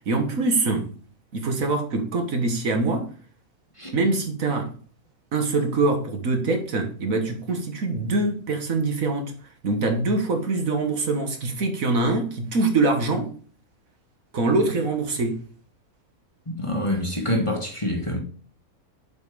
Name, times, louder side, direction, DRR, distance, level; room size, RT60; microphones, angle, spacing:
voice 1, 0.1-0.9 1.3-3.1 3.9-4.7 5.3-9.3 9.6-13.4 14.3-15.4, right 3 dB, 65° right, 1.8 m, -24 dB
voice 2, 16.5-18.2, left 1 dB, 20° left, 1.4 m, -26 dB
7.3 x 5.3 x 4.9 m
omnidirectional pair, 1.6 m